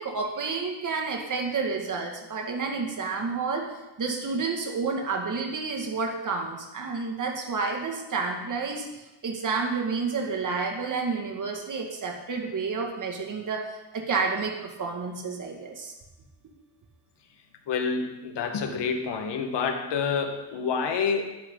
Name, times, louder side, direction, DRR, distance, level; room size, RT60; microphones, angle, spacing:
voice 1, 0.0-3.7 4.0-8.9 9.2-13.7 13.9-15.9, right 4 dB, 45° right, 1 dB, 2.2 m, -30 dB
voice 2, 17.7-21.2, left 5 dB, 70° left, 4 dB, 1.7 m, -28 dB
11.0 x 10.5 x 4.0 m, 1.0 s
cardioid pair, 100°, 43 cm